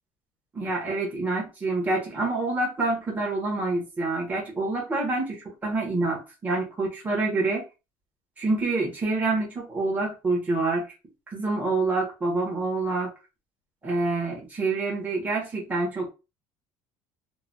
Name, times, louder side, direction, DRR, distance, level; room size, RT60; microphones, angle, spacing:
voice 1, 0.5-7.6 8.4-10.9 11.3-13.1 13.8-16.1, right 3 dB, 15° right, 1.3 m, -27 dB
3.0 x 2.5 x 2.5 m
cardioid pair, 155°, 9 cm